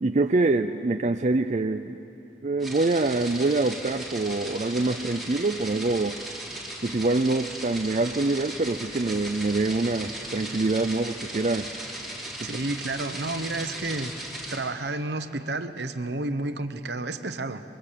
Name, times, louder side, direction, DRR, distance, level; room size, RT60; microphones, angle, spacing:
voice 1, 0.0-2.0 2.4-6.2 6.8-11.7 12.4-12.5, right 2 dB, 40° right, 6 dB, 0.5 m, -25 dB
sound 1, 2.6-14.6, right 1 dB, ahead, 3.4 m, -37 dB
voice 2, 12.4-14.1 14.5-17.6, right 2 dB, 70° right, 9 dB, 1.1 m, -31 dB
25.0 x 22.5 x 7.6 m, 2.8 s
head